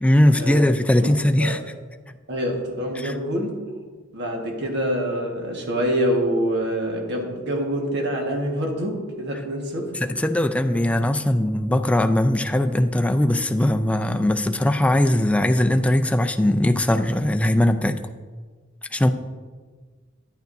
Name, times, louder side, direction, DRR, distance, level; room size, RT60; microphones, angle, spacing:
voice 1, 0.0-1.6 3.0-3.1 10.0-18.0 18.9-19.1, left 1 dB, 5° left, 6 dB, 0.4 m, -20 dB
voice 2, 2.3-3.6 4.1-9.9, equal, 55° right, 1 dB, 1.6 m, -26 dB
10.5 x 9.3 x 2.6 m, 1.4 s
head